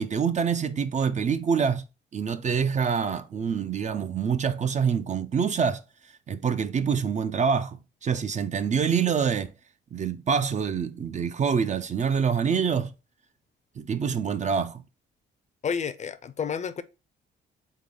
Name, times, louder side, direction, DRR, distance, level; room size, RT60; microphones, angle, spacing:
voice 1, 0.0-1.8 2.1-5.8 6.3-9.5 9.9-12.9 13.8-14.8, right 6 dB, 35° right, 0.4 m, -26 dB
voice 2, 15.6-16.8, left 7 dB, 35° left, 0.5 m, -30 dB
3.7 x 3.7 x 3.7 m
cardioid pair, 90°, 20 cm